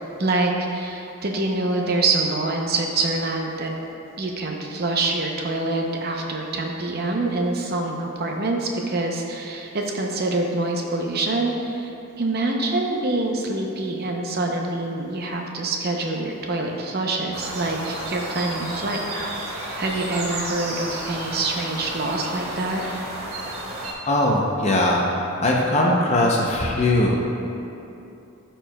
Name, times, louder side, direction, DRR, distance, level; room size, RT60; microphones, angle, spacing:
voice 1, 0.2-3.7 4.2-19.0 19.8-22.8, right 2 dB, 45° right, 1 dB, 0.6 m, -25 dB
sound 1, 17.3-23.9, right 1 dB, 75° right, 1.2 m, -32 dB
voice 2, 24.1-25.0 25.4-27.2, left 1 dB, 30° left, -2 dB, 0.6 m, -20 dB
13.0 x 4.5 x 2.2 m, 2.7 s
head